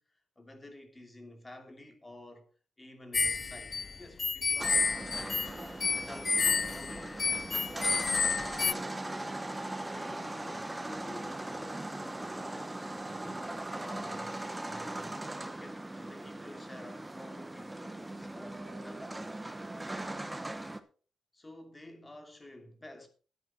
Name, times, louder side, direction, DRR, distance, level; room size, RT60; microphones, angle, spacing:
voice 1, 0.0-2.5 2.8-5.4 5.9-9.4 9.8-14.3 14.6-19.4 21.3-23.1, left 1 dB, 15° left, 2.7 m, -51 dB
sound 1, 3.1-8.7, left 4 dB, 35° left, 0.4 m, -30 dB
sound 2, 4.6-20.8, right 1 dB, 10° right, 1.2 m, -40 dB
13.5 x 10.0 x 4.3 m
cardioid pair, 130°, 0 cm